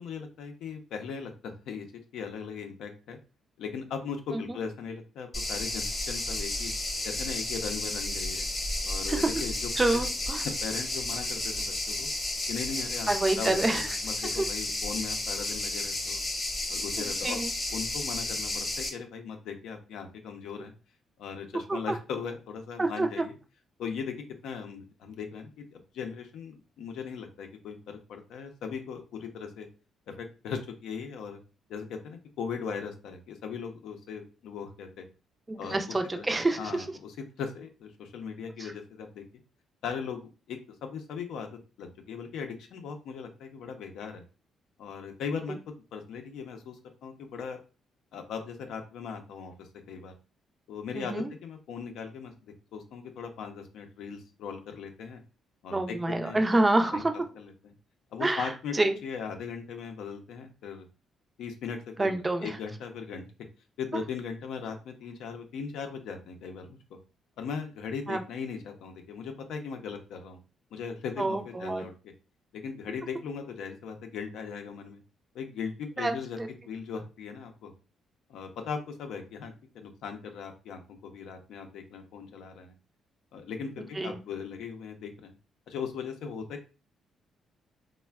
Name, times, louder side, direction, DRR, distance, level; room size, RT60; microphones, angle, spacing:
voice 1, 0.0-1.9 2.1-3.2 3.6-6.7 7.0-8.4 8.8-10.1 10.6-12.1 12.5-13.1 13.4-16.2 16.7-17.4 17.7-20.7 21.2-23.4 23.8-24.1 24.4-29.7 30.1-31.4 31.7-35.0 35.6-36.3 36.6-39.2 39.8-44.2 44.8-47.6 48.1-50.1 50.7-55.2 55.6-56.0 56.2-56.4 56.9-57.0 57.3-57.7 58.1-58.7 59.0-60.9 61.4-63.2 63.8-66.8 67.4-70.4 70.7-71.9 72.5-75.0 75.3-76.4 76.7-77.7 78.3-82.7 83.3-85.3 85.7-86.6, left 6 dB, 80° left, 4 dB, 0.5 m, -38 dB
sound 1, 5.3-18.9, left 2 dB, 30° left, 0.8 m, -32 dB
voice 2, 9.8-10.4 13.1-13.9 14.4-14.5 17.0-17.5 21.7-21.8 22.8-23.2 35.5-36.7 38.6-38.7 50.9-51.3 55.7-57.1 58.2-59.0 62.0-62.5 68.1-68.2 71.2-71.8 76.0-76.5 84.0-84.2, right 2 dB, 20° right, 6 dB, 0.4 m, -27 dB
3.3 x 2.1 x 2.3 m, 0.33 s
cardioid pair, 90°, 0 cm